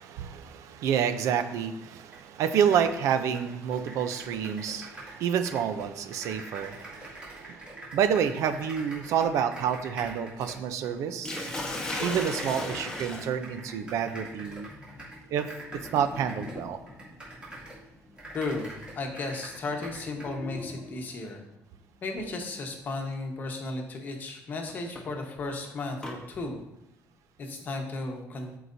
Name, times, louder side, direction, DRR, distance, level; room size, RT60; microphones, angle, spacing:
voice 1, 0.0-11.3 12.0-14.7 15.3-15.5 15.7-16.8, right 8 dB, 70° right, 9 dB, 0.6 m, -29 dB
sound 1, 2.1-2.2 2.5-5.2 5.4-10.9 11.4-11.7 12.2-17.8 18.2-20.4, right 2 dB, 20° right, 2.8 m, -44 dB
Sink (filling or washing), 11.2-21.2 22.3-22.6 23.1-23.2 24.7-26.2, left 1 dB, 15° left, 1.1 m, -39 dB
voice 2, 18.0-21.4 22.0-26.6 27.4-28.5, left 3 dB, 35° left, 2 dB, 1.2 m, -35 dB
13.5 x 4.8 x 2.7 m, 0.89 s
cardioid pair, 170°, 6 cm